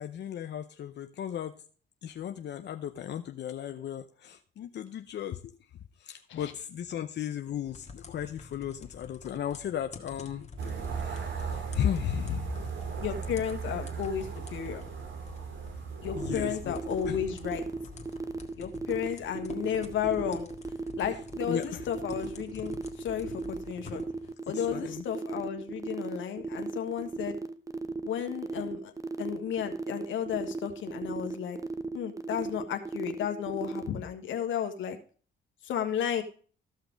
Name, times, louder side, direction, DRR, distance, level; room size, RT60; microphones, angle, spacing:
voice 1, 0.0-1.6 2.0-5.6 6.0-12.6 16.1-16.8 17.1-17.2 21.5-21.9 24.5-25.0, left 10 dB, 60° left, 7 dB, 0.7 m, -36 dB
sound 1, 7.7-24.3, left 4 dB, 35° left, 1.7 m, -48 dB
sound 2, 10.6-18.4, right 6 dB, 70° right, 2.4 m, -38 dB
voice 2, 13.0-14.8 16.0-17.6 18.6-20.5 21.0-24.0 24.5-27.4 28.0-28.9 29.2-31.6 31.9-35.0 35.6-36.2, left 9 dB, 75° left, 6 dB, 1.5 m, -33 dB
sound 3, 16.2-33.9, right 3 dB, 15° right, 0.9 m, -36 dB
14.0 x 5.8 x 5.2 m, 0.41 s
cardioid pair, 90°, 20 cm